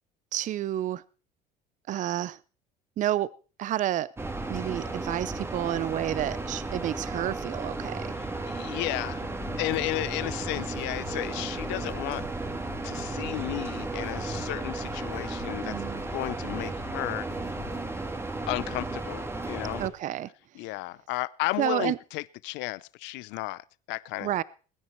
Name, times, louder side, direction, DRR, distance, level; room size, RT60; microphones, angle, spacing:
voice 1, 0.3-1.0 1.9-2.4 3.0-3.3 3.6-4.1 4.5-8.1 15.6-16.0 19.8-20.3 21.6-22.0 24.2-24.4, right 12 dB, 45° right, 0.6 m, -30 dB
sound 1, 4.2-19.9, right 2 dB, 15° right, 1.8 m, -34 dB
voice 2, 8.2-9.2 9.6-12.4 12.8-15.8 16.1-17.3 18.5-19.8 20.5-24.4, left 21 dB, 80° left, 0.6 m, -33 dB
sound 2, 9.1-17.9, left 14 dB, 60° left, 1.9 m, -48 dB
20.5 x 9.8 x 4.4 m
cardioid pair, 125°, 19 cm